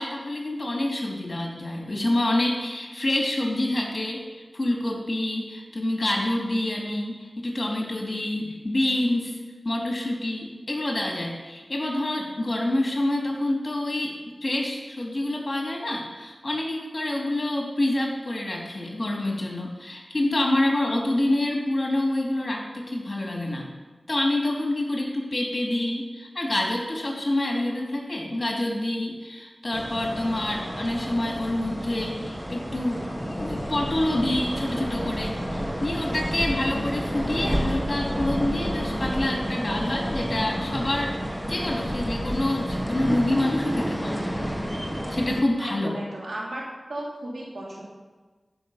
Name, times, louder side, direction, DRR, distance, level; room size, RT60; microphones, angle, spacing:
voice 1, 0.0-9.4 9.6-14.1 14.4-23.7 24.1-44.4 45.1-45.9, left 1 dB, 45° left, -1 dB, 2.6 m, -27 dB
sound 1, 29.7-45.4, equal, 10° right, 1.4 m, -30 dB
voice 2, 45.6-46.6 46.9-47.8, right 1 dB, 80° right, -4 dB, 3.1 m, -35 dB
14.0 x 5.6 x 5.5 m, 1.3 s
cardioid pair, 45°, 0 cm